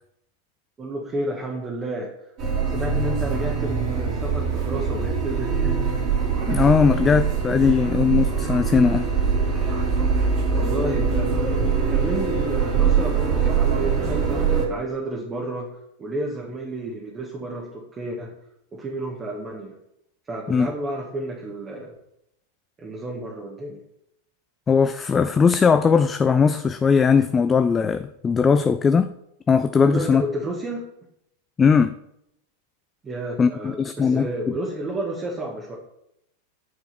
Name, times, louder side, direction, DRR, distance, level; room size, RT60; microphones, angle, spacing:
voice 1, 0.8-2.1 2.7-5.9 10.5-11.6 11.9-15.7 16.0-18.3 18.7-19.7 20.3-22.0 22.8-23.8 29.8-30.9 33.0-35.8, right 2 dB, 20° right, 1.8 m, -31 dB
sound 1, 2.4-14.7, right 5 dB, 40° right, 2.8 m, -23 dB
voice 2, 6.5-9.1 20.5-20.7 24.7-29.1 29.5-30.2 31.6-31.9 33.4-34.6, left 6 dB, 20° left, 0.4 m, -19 dB
9.9 x 4.7 x 5.9 m
figure-of-eight pair, 90°, 0 cm